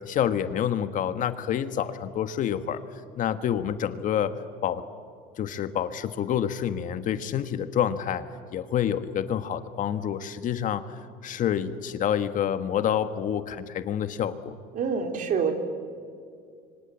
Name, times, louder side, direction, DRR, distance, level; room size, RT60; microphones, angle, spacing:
voice 1, 0.0-2.8 3.2-4.4 4.6-4.8 5.4-8.3 8.5-10.8 11.2-14.5, left 9 dB, 50° left, 10 dB, 1.5 m, -28 dB
voice 2, 14.7-15.5, right 6 dB, 50° right, 5 dB, 3.6 m, -26 dB
25.5 x 25.0 x 8.4 m, 2.3 s
supercardioid pair, 110°, 18 cm